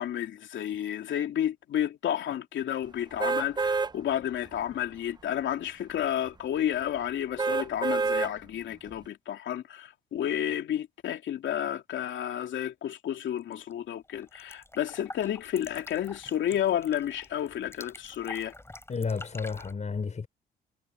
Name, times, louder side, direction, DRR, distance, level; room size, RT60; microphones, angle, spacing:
voice 1, 0.0-18.5, left 10 dB, 70° left, 2.8 m, -31 dB
sound 1, 3.2-3.9 4.5-4.6 7.4-8.3 8.9-9.0, right 4 dB, 20° right, 0.8 m, -27 dB
sound 2, 13.4-13.7 14.0-19.7, left 2 dB, 10° left, 7.5 m, -47 dB
voice 2, 18.9-20.3, left 5 dB, 35° left, 5.2 m, -32 dB
cardioid pair, 90°, 20 cm